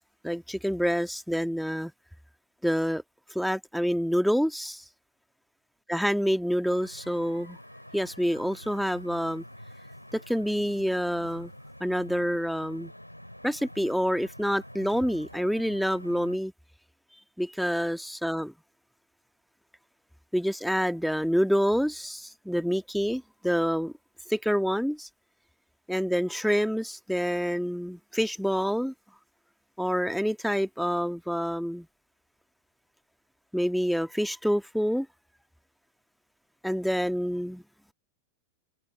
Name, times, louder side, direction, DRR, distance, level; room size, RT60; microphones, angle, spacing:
voice 1, 0.2-1.9 2.6-3.0 3.3-4.9 5.9-7.6 7.9-9.4 10.1-11.5 11.8-12.9 13.4-16.5 17.4-18.5 20.3-23.9 24.3-25.1 25.9-28.9 29.8-31.9 33.5-35.1 36.6-37.6, equal, ahead, 1.7 m, -27 dB
sound 1, 6.6-16.4, equal, 90° left, 3.8 m, -47 dB
figure-of-eight pair, 90°, 0 cm